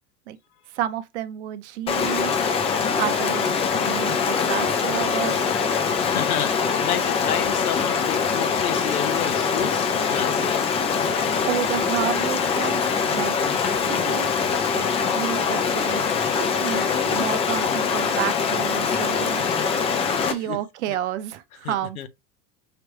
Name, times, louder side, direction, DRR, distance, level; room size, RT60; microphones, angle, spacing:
voice 1, 0.7-2.3 3.0-3.5 3.9-5.4 11.5-12.8 13.1-13.3 13.9-14.3 14.7-14.9 15.1-16.0 16.3-16.8 17.1-19.4 20.2-22.1, right 12 dB, 50° right, 0.6 m, -30 dB
Stream, 1.9-20.3, left 6 dB, 15° left, 0.4 m, -23 dB
voice 2, 6.0-10.5 20.4-20.6 20.9-21.0 21.6-22.1, left 10 dB, 65° left, 0.7 m, -31 dB
4.9 x 3.0 x 2.9 m
figure-of-eight pair, 80°, 47 cm